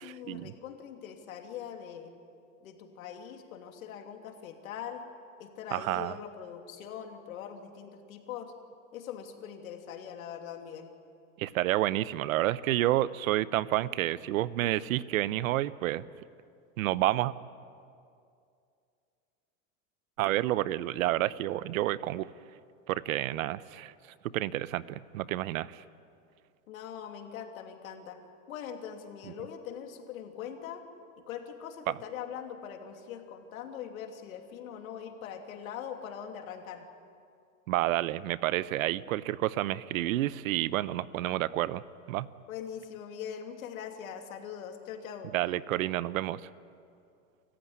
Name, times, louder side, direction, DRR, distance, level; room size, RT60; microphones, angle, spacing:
voice 1, 0.0-2.1 2.6-5.0 5.4-8.5 8.9-10.9 26.7-28.2 28.5-30.8 31.2-36.9 42.5-45.3, left 8 dB, 85° left, 4 dB, 2.9 m, -42 dB
voice 2, 5.7-6.1 11.4-16.0 16.8-17.3 20.2-22.2 22.9-23.9 24.3-25.8 37.7-41.8 42.1-42.3 45.3-46.4, right 15 dB, 85° right, 18 dB, 0.8 m, -29 dB
27.5 x 15.0 x 9.7 m, 2.4 s
supercardioid pair, 135°, 40 cm